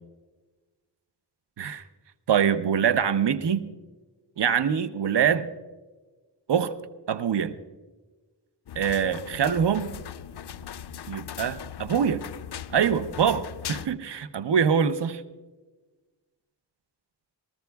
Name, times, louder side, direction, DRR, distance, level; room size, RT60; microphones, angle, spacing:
voice 1, 2.3-3.6 4.4-5.5 6.5-6.7 7.1-7.6 8.8-9.9 11.1-12.2 12.7-15.2, right 7 dB, 85° right, 11 dB, 0.7 m, -24 dB
sound 1, 8.7-13.9, left 9 dB, 75° left, 0.5 m, -39 dB
27.5 x 14.0 x 2.3 m, 1.2 s
wide cardioid pair, 65°, 40 cm